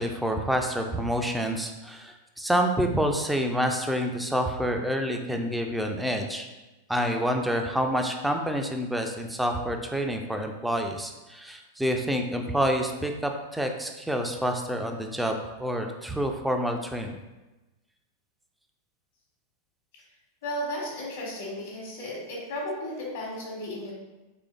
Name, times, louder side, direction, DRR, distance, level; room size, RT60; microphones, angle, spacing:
voice 1, 0.0-6.5 6.9-17.2, equal, 5° right, 4 dB, 0.3 m, -28 dB
voice 2, 20.4-23.9, left 1 dB, 60° left, -4 dB, 1.1 m, -34 dB
3.8 x 3.0 x 2.3 m, 1.1 s
figure-of-eight pair, 90°, 0 cm